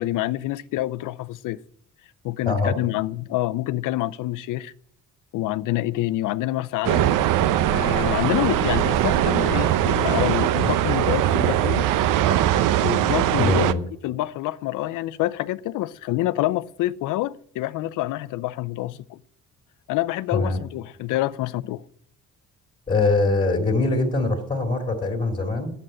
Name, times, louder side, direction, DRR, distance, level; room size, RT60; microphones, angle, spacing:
voice 1, 0.0-1.6 2.2-4.7 5.3-7.1 7.7-11.9 12.3-12.4 12.8-13.7 14.0-19.2 19.9-21.8, left 15 dB, 80° left, 0.6 m, -27 dB
sound 1, 6.8-13.7, right 12 dB, 85° right, 0.7 m, -21 dB
voice 2, 13.4-13.8 20.3-20.6 22.9-25.7, left 3 dB, 20° left, 2.3 m, -22 dB
11.0 x 7.9 x 8.9 m
cardioid pair, 140°, 31 cm